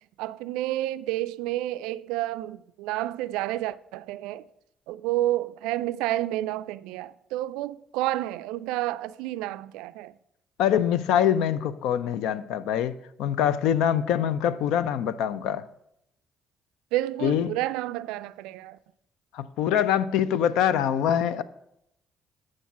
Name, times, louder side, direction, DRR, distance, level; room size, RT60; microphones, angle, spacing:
voice 1, 0.2-4.5 4.9-10.2 16.9-18.8, right 15 dB, 80° right, 0.3 m, -30 dB
voice 2, 10.6-15.6 17.2-17.6 19.3-21.4, left 9 dB, 75° left, 0.4 m, -24 dB
9.2 x 6.3 x 5.8 m
hypercardioid pair, 50°, 0 cm